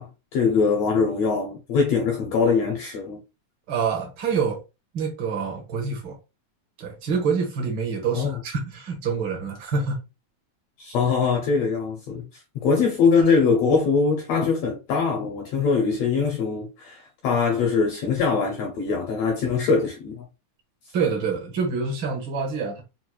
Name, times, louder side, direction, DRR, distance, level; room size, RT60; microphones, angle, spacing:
voice 1, 0.0-3.2 8.1-8.4 10.8-20.2, left 5 dB, 75° left, 1.6 m, -22 dB
voice 2, 3.7-4.6 4.9-6.2 6.8-10.0 20.9-22.8, right 5 dB, 80° right, 1.0 m, -26 dB
6.0 x 2.0 x 2.3 m
omnidirectional pair, 3.6 m